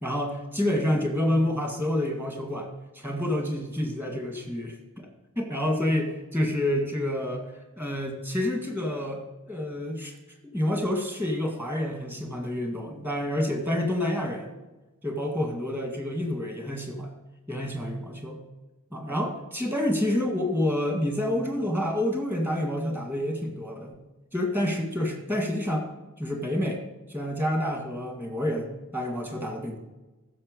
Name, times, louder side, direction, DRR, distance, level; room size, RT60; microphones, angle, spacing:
voice 1, 0.0-2.7 2.9-4.8 5.4-7.5 7.8-10.1 10.4-14.5 15.0-17.1 17.5-18.4 18.9-23.9 24.3-25.9 26.2-26.8 27.1-29.8, left 1 dB, 10° right, 2 dB, 1.8 m, -28 dB
14.5 x 6.8 x 5.4 m, 1.1 s
head